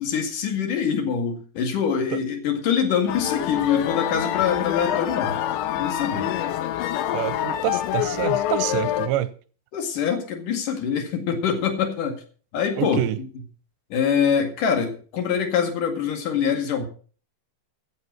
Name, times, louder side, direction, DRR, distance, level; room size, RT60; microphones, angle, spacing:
voice 1, 0.0-5.3 5.7-6.3 9.7-12.2 12.5-13.3 13.9-16.9, left 7 dB, 55° left, 3.2 m, -24 dB
sound 1, 3.1-9.1, left 11 dB, 90° left, 3.3 m, -26 dB
voice 2, 7.1-9.3 12.8-13.2, right 13 dB, 80° right, 2.7 m, -27 dB
15.0 x 7.9 x 6.2 m
omnidirectional pair, 5.2 m